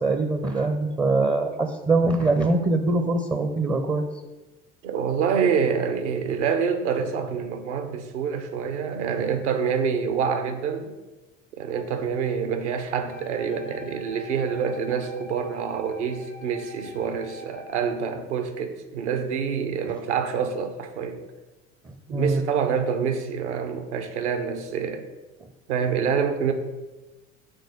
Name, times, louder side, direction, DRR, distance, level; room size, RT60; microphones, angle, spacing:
voice 1, 0.0-4.0 21.9-22.4, right 2 dB, 10° right, 6 dB, 0.5 m, -23 dB
voice 2, 4.8-10.9 11.6-21.2 22.1-25.0 25.7-26.5, right 6 dB, 65° right, 7 dB, 0.8 m, -26 dB
Wind instrument woodwind instrument, 13.1-18.1, equal, 90° left, 1.2 m, -44 dB
6.5 x 3.9 x 5.0 m, 1.1 s
figure-of-eight pair, 60°, 37 cm